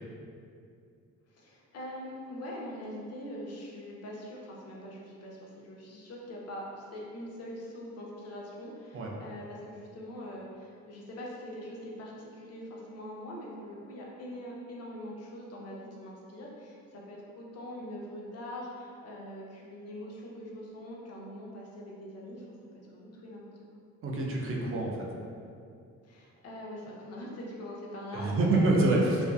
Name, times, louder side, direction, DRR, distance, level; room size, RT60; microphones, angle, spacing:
voice 1, 1.3-6.7 6.9-22.5 22.7-23.4 26.0-28.8, equal, 55° left, -3 dB, 0.6 m, -43 dB
voice 2, 24.0-25.0 28.1-29.3, right 2 dB, 45° right, -2 dB, 0.4 m, -26 dB
2.5 x 2.3 x 2.2 m, 2.4 s
cardioid pair, 90°, 30 cm